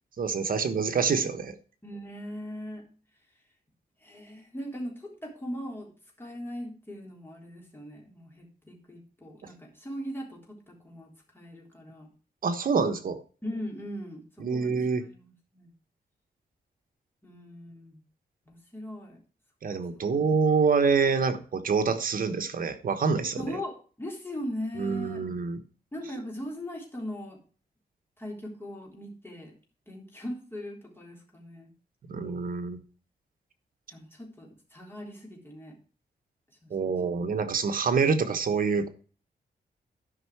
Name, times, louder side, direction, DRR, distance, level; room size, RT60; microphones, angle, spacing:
voice 1, 0.2-1.5 12.4-13.2 14.4-15.0 19.6-23.4 24.8-25.6 32.1-32.8 36.7-38.9, right 5 dB, 55° right, 8 dB, 1.2 m, -26 dB
voice 2, 1.8-2.8 4.0-5.9 6.2-12.1 13.4-14.2 14.5-14.7 15.1-15.7 17.2-18.0 18.5-19.2 23.4-25.2 25.9-27.4 28.2-29.5 29.9-31.7 33.9-35.8 36.6-37.2, equal, 15° left, -1 dB, 3.6 m, -39 dB
12.0 x 5.6 x 4.6 m, 0.39 s
wide cardioid pair, 155°, 17 cm